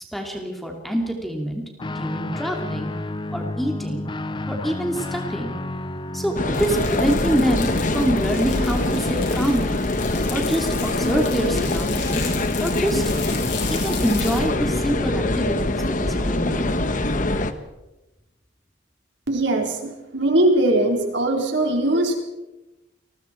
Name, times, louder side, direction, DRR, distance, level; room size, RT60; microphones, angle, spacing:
voice 1, 0.1-1.6 1.9-2.9 3.3-4.0 4.5-5.5 6.1-9.8 10.3-12.3 12.6-13.1 13.7-17.0, equal, ahead, 1 dB, 2.8 m, -26 dB
Guitar, 1.8-9.5, left 2 dB, 25° left, 0.6 m, -32 dB
sound 1, 6.4-17.5, left 2 dB, 40° left, 1.2 m, -23 dB
sound 2, 6.5-14.4, left 6 dB, 60° left, 7.1 m, -36 dB
voice 2, 19.3-22.2, right 1 dB, 60° right, 1 dB, 4.4 m, -20 dB
29.5 x 21.0 x 4.6 m, 1.0 s
head